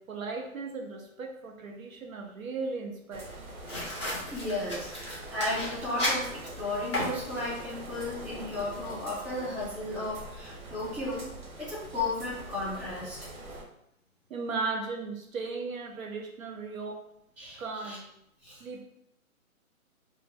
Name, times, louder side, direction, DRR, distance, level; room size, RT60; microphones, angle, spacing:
voice 1, 0.1-3.4 14.3-17.0 17.6-18.0 18.6-18.8, right 4 dB, 70° right, 2 dB, 0.6 m, -36 dB
sound 1, 3.1-13.6, right 2 dB, 90° right, 1.1 m, -44 dB
sound 2, 3.7-7.7, left 1 dB, 20° left, 0.5 m, -35 dB
voice 2, 4.3-11.3 11.6-13.3 17.4-18.0 18.4-18.6, left 2 dB, 10° right, -11 dB, 0.9 m, -34 dB
2.6 x 2.1 x 3.2 m, 0.78 s
hypercardioid pair, 155°, 43 cm